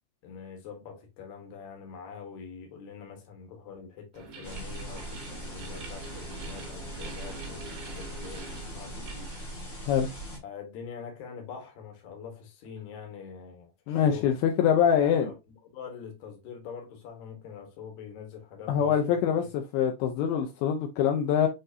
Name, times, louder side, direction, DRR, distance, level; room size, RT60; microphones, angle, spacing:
voice 1, 0.2-9.3 10.4-14.3 15.0-15.4 15.6-19.5, left 6 dB, 65° left, 1.9 m, -44 dB
sound 1, 4.1-9.9, right 3 dB, 60° right, 2.7 m, -45 dB
sound 2, 4.4-10.4, equal, 40° left, 1.3 m, -40 dB
voice 2, 13.9-15.3 18.7-19.4 19.7-21.5, left 8 dB, 80° left, 2.3 m, -24 dB
7.6 x 2.6 x 2.7 m
omnidirectional pair, 5.1 m